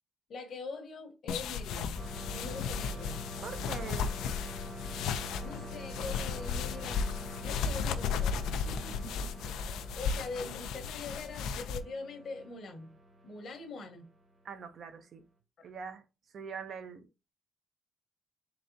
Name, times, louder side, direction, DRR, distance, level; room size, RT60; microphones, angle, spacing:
voice 1, 0.3-2.0 2.2-3.2 5.4-8.4 9.3-12.9 13.2-14.1, left 3 dB, 60° left, 1.0 m, -43 dB
sound 1, 1.3-11.8, left 6 dB, 85° left, 0.4 m, -35 dB
sound 2, 2.0-14.4, equal, 35° right, 1.1 m, -47 dB
voice 2, 3.4-4.1 8.7-9.3 14.4-15.2 15.6-16.0 16.3-17.1, right 6 dB, 60° right, 0.6 m, -43 dB
4.0 x 3.3 x 2.6 m
cardioid pair, 90°, 0 cm